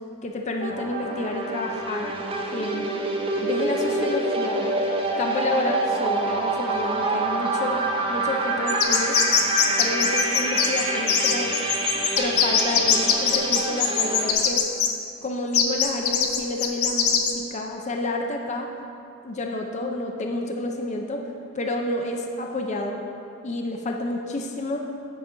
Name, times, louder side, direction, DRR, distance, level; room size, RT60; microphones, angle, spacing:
voice 1, 0.2-2.1 2.5-3.0 3.4-4.8 5.2-7.8 8.1-9.2 9.8-11.5 12.2-14.6 15.2-18.7 19.2-21.3 21.5-23.0 23.4-24.8, left 2 dB, 35° left, 2 dB, 0.5 m, -29 dB
sound 1, 0.6-14.3, right 2 dB, 25° right, 0.6 m, -27 dB
sound 2, 8.7-14.9 15.5-17.3, left 8 dB, 85° left, 0.7 m, -21 dB
9.3 x 4.1 x 4.8 m, 2.5 s
head